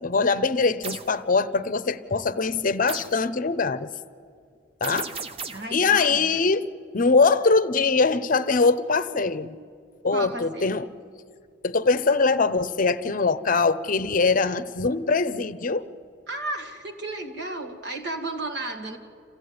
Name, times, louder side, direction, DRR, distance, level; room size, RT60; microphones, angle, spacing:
voice 1, 0.0-3.9 4.8-5.1 5.7-6.7 6.9-9.5 10.0-10.8 11.6-15.8, left 4 dB, 45° left, 0.7 m, -22 dB
sound 1, 0.8-1.1 2.9-3.2 4.8-5.8, right 5 dB, 30° right, 0.8 m, -35 dB
voice 2, 5.5-6.5 10.1-10.8 16.3-19.0, right 2 dB, 65° right, 2.2 m, -33 dB
27.0 x 15.0 x 9.5 m
head